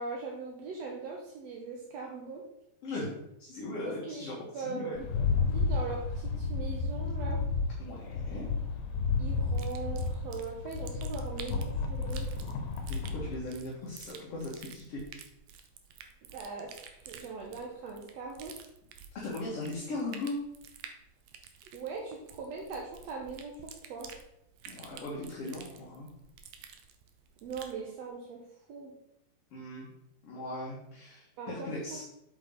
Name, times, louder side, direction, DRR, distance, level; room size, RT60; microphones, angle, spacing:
voice 1, 0.0-2.4 4.1-4.2 4.5-5.0 5.5-7.4 9.2-12.3 16.3-18.5 21.7-24.1 27.4-28.4 28.7-28.9 31.4-32.0, right 4 dB, 65° right, -1 dB, 1.8 m, -40 dB
voice 2, 2.8-3.1 3.4-5.0 7.8-8.5 12.9-15.0 19.1-20.4 24.7-26.1 29.5-29.9 30.2-32.0, left 2 dB, 45° left, -5 dB, 2.4 m, -38 dB
Rattle, 5.0-13.4, left 4 dB, 80° left, 2.8 m, -32 dB
sound 1, 9.5-27.8, right 7 dB, 90° right, 1.5 m, -51 dB
8.0 x 7.7 x 3.9 m, 0.80 s
omnidirectional pair, 4.2 m